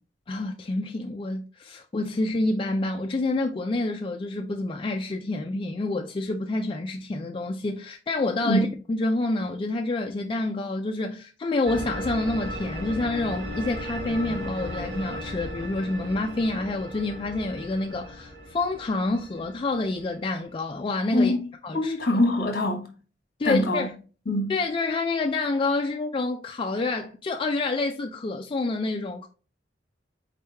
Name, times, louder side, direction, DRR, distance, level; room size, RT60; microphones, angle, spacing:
voice 1, 0.3-21.3 21.6-21.9 23.4-23.9 24.5-29.3, left 2 dB, 30° left, 0.3 m, -28 dB
sound 1, 11.7-20.5, equal, 85° right, 1.3 m, -36 dB
voice 2, 21.1-22.9 23.4-23.9 24.3-24.5, left 1 dB, 55° left, 1.3 m, -24 dB
4.3 x 3.3 x 3.3 m
head